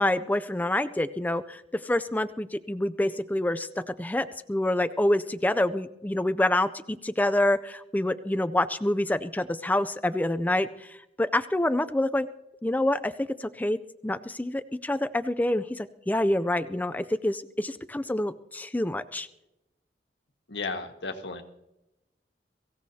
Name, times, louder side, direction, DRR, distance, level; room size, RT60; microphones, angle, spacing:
voice 1, 0.0-3.7 4.0-10.9 11.2-12.3 12.6-13.1 13.4-13.8 14.0-19.3, left 1 dB, 10° left, 12 dB, 0.4 m, -27 dB
voice 2, 20.5-21.4, left 3 dB, 85° left, 6 dB, 1.6 m, -34 dB
23.5 x 16.0 x 2.8 m, 0.90 s
head